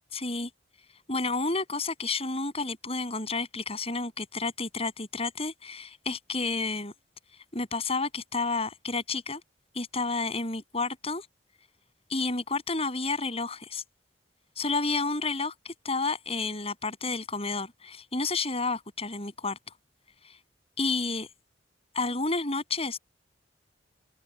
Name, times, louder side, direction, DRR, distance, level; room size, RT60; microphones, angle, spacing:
voice 1, 0.1-0.5 1.1-6.9 7.5-9.4 9.7-11.3 12.1-13.8 14.6-19.6 20.2-20.3 20.8-21.3 21.9-23.0, left 3 dB, 35° left, 7.9 m, -30 dB
head